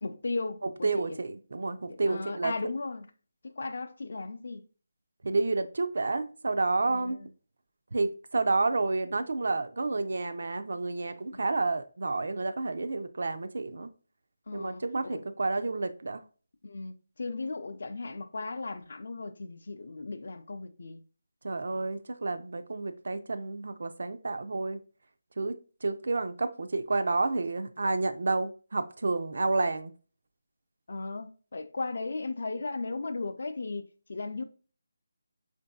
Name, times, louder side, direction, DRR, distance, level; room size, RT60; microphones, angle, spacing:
voice 1, 0.0-1.2 1.9-3.1 3.4-4.6 6.8-7.3 14.5-15.3 16.6-21.0 30.9-34.4, left 3 dB, 60° left, 0.4 m, -36 dB
voice 2, 0.6-2.5 5.2-7.2 7.9-13.9 14.5-16.2 21.4-24.8 25.4-25.6 25.8-29.9, right 3 dB, 65° right, 0.4 m, -30 dB
4.5 x 2.6 x 2.2 m
figure-of-eight pair, 165°, 0 cm